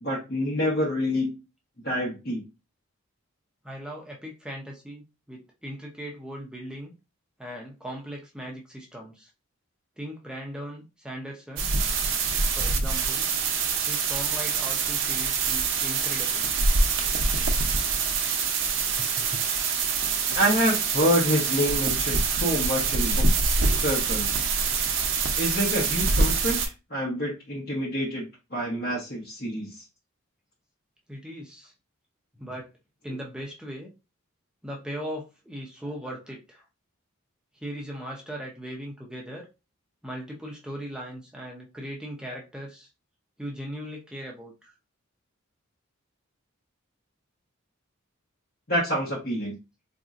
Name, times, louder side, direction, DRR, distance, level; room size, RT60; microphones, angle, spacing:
voice 1, 0.0-1.4 1.8-2.4 20.4-24.4 25.4-26.6 26.9-28.2 28.5-29.8 48.7-49.5, equal, 45° left, -5 dB, 1.1 m, -27 dB
voice 2, 3.6-6.9 7.4-9.3 10.0-11.8 12.5-13.3 13.9-16.5 19.0-19.4 31.1-31.7 32.4-32.7 33.0-33.9 34.6-36.6 37.5-39.5 40.0-42.9 43.4-44.7, equal, 5° right, -2 dB, 0.6 m, -38 dB
sound 1, 11.6-26.7, right 4 dB, 60° right, 0.7 m, -25 dB
4.1 x 2.7 x 2.4 m, 0.27 s
head